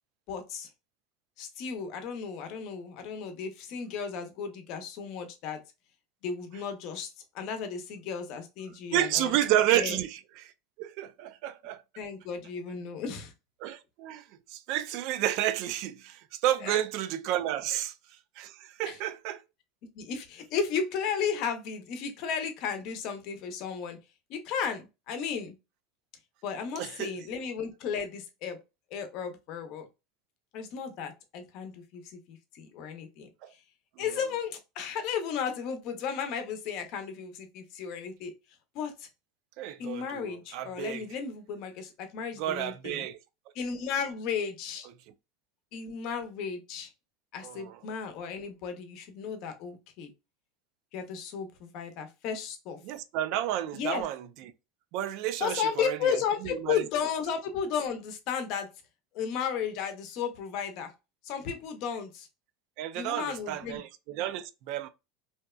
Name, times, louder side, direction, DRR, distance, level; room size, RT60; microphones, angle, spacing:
voice 1, 0.3-0.7 1.4-5.6 6.2-9.3 9.7-10.0 12.0-13.3 16.6-16.8 18.8-19.0 20.0-24.0 24.3-25.5 26.4-28.6 28.9-29.8 30.5-33.3 34.0-38.3 38.7-39.1 39.8-43.1 43.5-44.9 45.7-46.9 47.3-50.1 50.9-52.8 53.7-54.1 55.4-58.7 59.1-60.9 61.2-62.3 62.9-63.8, left 6 dB, 55° left, 0.6 m, -34 dB
voice 2, 8.9-10.5 10.8-11.8 13.6-14.2 14.5-17.9 18.4-19.4 26.7-27.2 33.4-33.5 34.0-34.1 39.6-41.0 42.4-43.2 47.4-47.8 52.8-54.5 54.9-56.2 56.6-56.8 62.8-64.9, right 12 dB, 60° right, 0.3 m, -31 dB
2.7 x 2.1 x 2.2 m
supercardioid pair, 125°, 0 cm